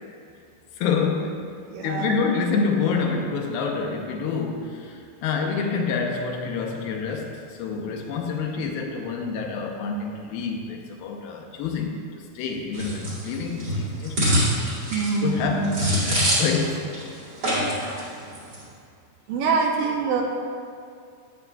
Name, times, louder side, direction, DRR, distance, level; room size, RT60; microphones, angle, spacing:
voice 1, 0.8-1.4 1.8-12.0 12.4-14.2 15.2-16.9, left 5 dB, 85° left, 2 dB, 2.6 m, -27 dB
voice 2, 1.7-2.1 14.9-15.6 19.3-20.2, right 4 dB, 80° right, 1 dB, 2.3 m, -24 dB
sound 1, 12.7-16.7 16.9-17.0 17.4-18.0 18.3-18.6, equal, 35° right, 2.4 m, -24 dB
12.0 x 8.0 x 2.3 m, 2.3 s
omnidirectional pair, 4.1 m